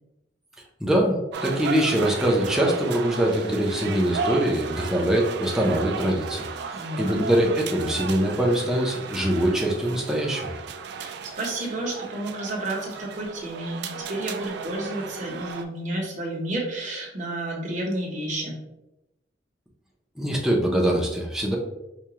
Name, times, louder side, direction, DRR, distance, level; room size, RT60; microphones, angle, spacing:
voice 1, 0.8-6.4 7.0-10.5 20.2-21.6, right 1 dB, 5° right, -1 dB, 0.6 m, -23 dB
sound 1, 1.3-15.6, right 5 dB, 60° right, 0.3 m, -35 dB
voice 2, 6.7-7.2 11.0-18.6, right 1 dB, 40° right, -1 dB, 0.8 m, -31 dB
4.7 x 2.2 x 2.8 m, 0.94 s
head